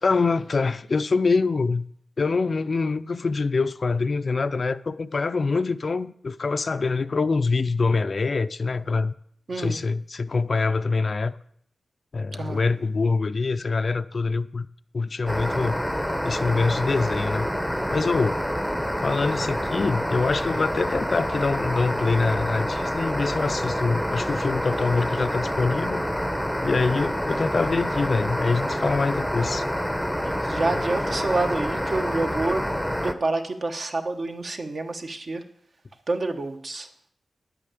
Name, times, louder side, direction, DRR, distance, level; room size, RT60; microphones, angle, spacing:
voice 1, 0.0-1.9 2.2-9.1 9.6-11.3 12.1-14.7 14.9-15.8 16.2-17.5 17.9-18.4 19.0-26.1 26.6-29.6, left 4 dB, 45° left, 0.5 m, -25 dB
voice 2, 9.5-9.8 12.4-12.6 30.2-32.7 33.0-35.4 36.1-36.9, right 2 dB, 45° right, 1.3 m, -28 dB
sound 1, 15.3-33.1, equal, ahead, 0.9 m, -27 dB
10.0 x 8.6 x 8.4 m
wide cardioid pair, 115°, 0 cm